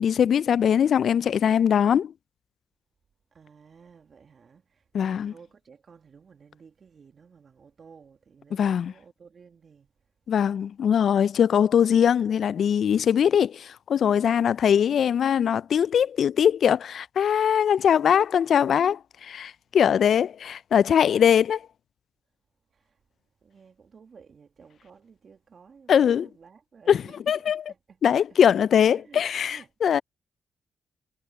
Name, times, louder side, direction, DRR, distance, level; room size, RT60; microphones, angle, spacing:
voice 1, 0.0-2.1 4.9-5.3 8.5-8.9 10.3-21.6 25.9-26.3 26.9-27.6 28.0-30.0, left 8 dB, 70° left, 0.3 m, -21 dB
voice 2, 3.3-9.9 22.7-22.9 23.4-28.0 28.9-29.2 29.5-30.0, right 6 dB, 55° right, 1.8 m, -53 dB
supercardioid pair, 45°, 0 cm